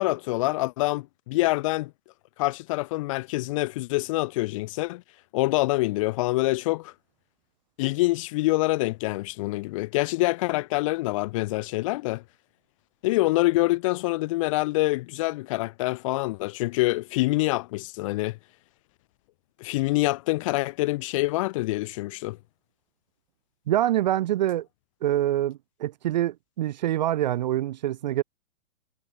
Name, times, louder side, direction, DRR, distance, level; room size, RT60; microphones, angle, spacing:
voice 1, 0.0-1.9 2.4-5.0 5.3-6.9 7.8-12.2 13.0-18.4 19.6-22.4, left 20 dB, 25° left, 1.0 m, -26 dB
voice 2, 23.7-24.7 25.0-28.2, right 13 dB, 30° right, 0.8 m, -25 dB
hypercardioid pair, 165°, 42 cm